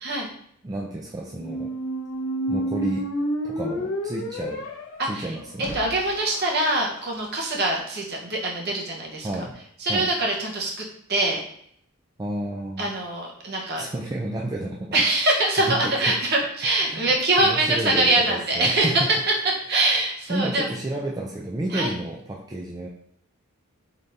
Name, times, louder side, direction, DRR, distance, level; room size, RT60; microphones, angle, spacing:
voice 1, 0.6-1.7 2.5-3.0 3.4-4.6 5.1-5.8 9.2-9.5 9.9-10.1 12.2-12.9 13.8-14.9 15.7-16.0 16.8-18.9 20.3-22.9, right 1 dB, 20° right, -3 dB, 0.3 m, -31 dB
sound 1, 1.3-7.3, equal, 75° left, 0.5 m, -31 dB
voice 2, 5.0-5.3 5.6-9.3 9.8-11.4 12.8-13.8 14.9-19.2 19.4-20.7 21.7-21.9, right 2 dB, 50° right, -1 dB, 0.9 m, -23 dB
3.9 x 2.6 x 3.3 m, 0.69 s
head